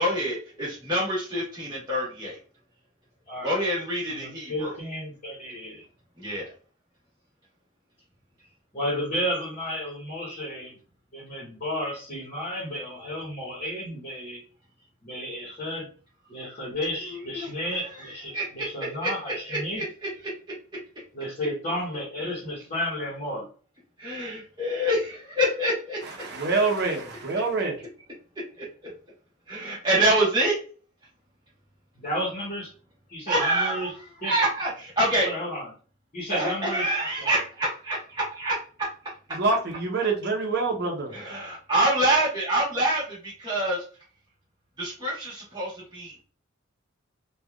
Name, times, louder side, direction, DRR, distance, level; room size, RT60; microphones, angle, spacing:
voice 1, 0.0-2.4 3.4-4.7 6.2-6.5 17.4-17.5 18.3-18.7 19.0-19.1 19.5-19.8 24.0-26.0 28.6-28.7 29.5-30.6 33.3-33.9 34.2-35.3 36.3-38.6 41.1-43.8 44.8-46.1, right 1 dB, 20° right, -6 dB, 1.3 m, -26 dB
voice 2, 3.3-3.6 4.1-5.8 8.7-10.8 11.1-14.4 15.0-15.9 16.3-19.8 21.1-23.5 32.0-32.7 33.1-33.9 34.2-34.4 35.1-35.7 36.1-37.4, equal, 35° left, -4 dB, 1.0 m, -32 dB
voice 3, 26.0-27.7 39.3-41.1, right 3 dB, 50° right, 1 dB, 0.8 m, -26 dB
3.2 x 2.3 x 2.4 m, 0.40 s
head